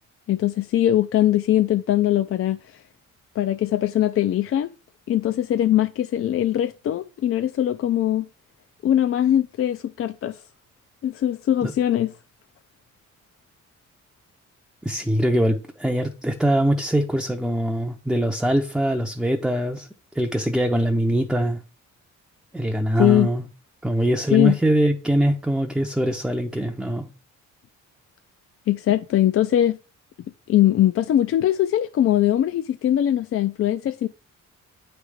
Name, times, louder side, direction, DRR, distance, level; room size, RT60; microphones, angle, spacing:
voice 1, 0.3-2.8 3.4-4.7 5.1-8.3 8.8-10.4 11.0-12.1 23.0-23.3 24.3-24.6 28.7-29.8 30.5-34.1, left 12 dB, 50° left, 0.4 m, -21 dB
voice 2, 14.8-19.9 20.1-21.6 22.5-23.4 23.8-27.1, right 1 dB, ahead, 0.5 m, -22 dB
8.6 x 3.3 x 4.9 m
cardioid pair, 135°, 30 cm